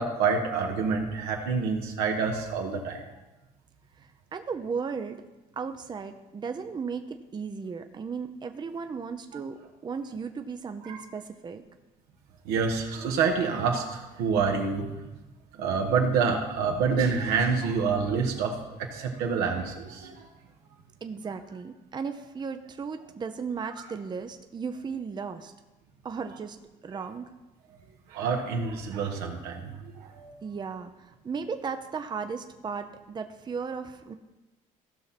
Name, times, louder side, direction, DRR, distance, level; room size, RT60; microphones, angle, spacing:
voice 1, 0.0-3.0 10.9-11.0 12.4-14.8 15.6-20.3 28.1-30.3, right 5 dB, 85° right, 2 dB, 1.5 m, -27 dB
voice 2, 4.0-5.2 5.6-11.6 21.0-25.5 26.0-27.3 30.4-34.2, right 5 dB, 30° right, 7 dB, 0.6 m, -36 dB
15.5 x 5.9 x 4.2 m, 1.1 s
supercardioid pair, 90°, 16 cm